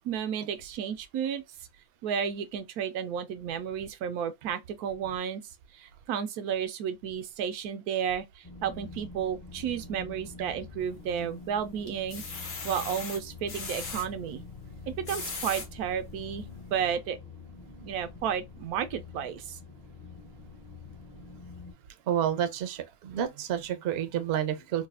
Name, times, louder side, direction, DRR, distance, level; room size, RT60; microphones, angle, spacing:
voice 1, 0.0-1.4 2.0-5.4 5.7-14.4 14.9-17.2 17.8-19.6, right 8 dB, 85° right, 1.1 m, -32 dB
sound 1, 8.4-21.7, left 4 dB, 30° left, 0.4 m, -46 dB
sound 2, 10.8-11.4 11.9-14.1 14.8-15.7 16.3-16.4 16.7-16.8, left 4 dB, 50° left, 1.0 m, -38 dB
voice 2, 22.1-24.9, right 10 dB, 60° right, 0.7 m, -29 dB
4.0 x 2.3 x 2.4 m
omnidirectional pair, 1.6 m